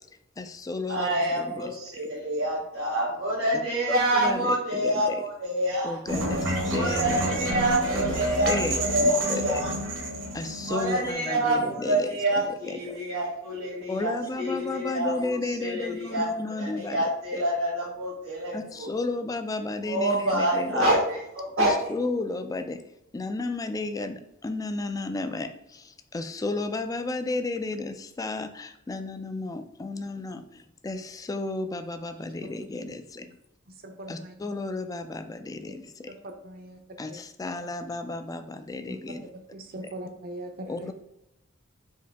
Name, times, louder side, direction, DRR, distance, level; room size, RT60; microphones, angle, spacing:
voice 1, 0.4-1.1 1.4-1.7 3.9-5.2 5.8-7.6 7.9-8.1 8.5-9.6 10.3-12.1 12.6-13.0 13.9-17.0 17.3-17.4 18.5-20.9 21.6-22.8 23.1-33.4 34.1-35.8 37.0-39.3 40.7-40.9, left 2 dB, 15° left, 8 dB, 0.3 m, -33 dB
voice 2, 0.9-6.0 6.7-9.7 10.7-16.3 16.6-18.9 19.8-21.9, right 1 dB, 85° right, -7 dB, 1.3 m, -27 dB
sound 1, 6.1-11.1, right 1 dB, 65° right, 1.0 m, -29 dB
voice 3, 33.7-34.3 36.2-36.8 37.1-37.2 39.5-40.9, right 1 dB, 50° right, 5 dB, 0.6 m, -40 dB
4.6 x 2.7 x 3.4 m, 0.85 s
head